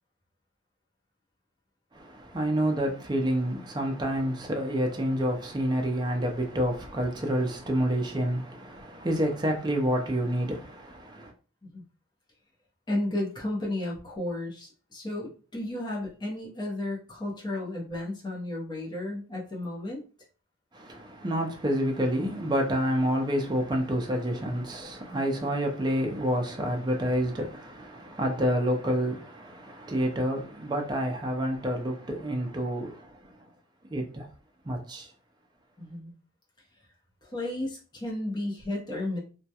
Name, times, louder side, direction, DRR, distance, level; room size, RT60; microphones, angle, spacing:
voice 1, 1.9-11.3 20.7-33.4 33.9-34.3 34.6-35.1, equal, 20° right, 0.4 m, -28 dB
voice 2, 12.9-20.0 35.8-36.1 37.2-39.2, left 1 dB, 20° left, 0.6 m, -33 dB
2.2 x 2.1 x 2.7 m
head